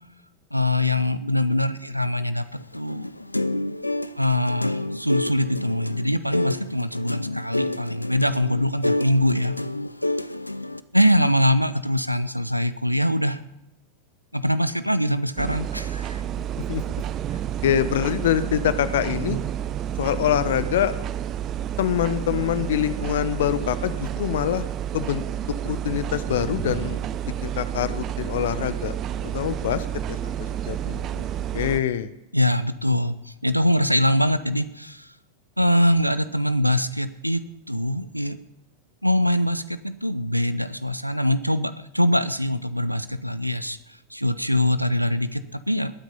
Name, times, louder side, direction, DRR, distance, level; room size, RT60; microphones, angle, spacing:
voice 1, 0.5-2.4 2.7-3.1 4.2-9.6 10.9-13.4 14.3-16.2 32.3-33.2 33.4-35.1 35.6-37.4 37.7-38.4 39.0-43.8 44.1-45.9, left 1 dB, 90° right, 14 dB, 0.8 m, -23 dB
sound 1, 2.6-10.8, left 1 dB, 85° left, 0.5 m, -29 dB
sound 2, 15.4-31.8, right 10 dB, 35° right, 0.6 m, -30 dB
voice 2, 17.6-19.4 20.0-20.9 21.8-24.7 24.9-25.2 25.6-27.0 27.2-29.0 29.2-30.3 30.7-31.3 31.5-32.1, left 10 dB, 60° left, 14 dB, 1.0 m, -25 dB
20.0 x 9.2 x 5.6 m, 0.87 s
figure-of-eight pair, 90°, 0 cm